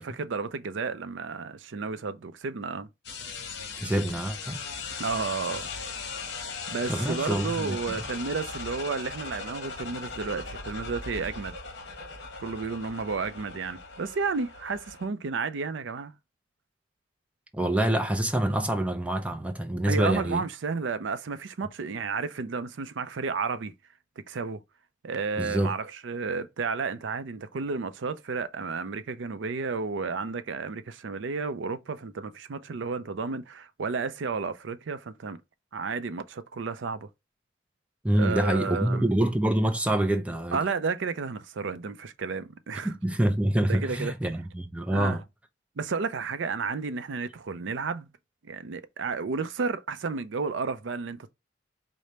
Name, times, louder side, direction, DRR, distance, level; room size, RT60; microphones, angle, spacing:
voice 1, 0.0-2.9 5.0-5.7 6.3-11.6 12.4-16.1 19.9-23.7 24.3-24.6 25.0-35.4 35.7-37.1 38.1-39.1 40.5-42.9 43.7-44.1 44.9-45.2 45.8-48.1 48.4-51.3, right 4 dB, 75° right, 0.5 m, -32 dB
sound 1, 3.0-15.1, left 4 dB, 60° left, 1.0 m, -38 dB
voice 2, 3.8-4.6 6.9-8.0 17.5-20.4 25.4-25.7 38.0-40.6 42.8-45.2, right 1 dB, 5° right, 0.4 m, -26 dB
4.9 x 2.1 x 4.1 m
head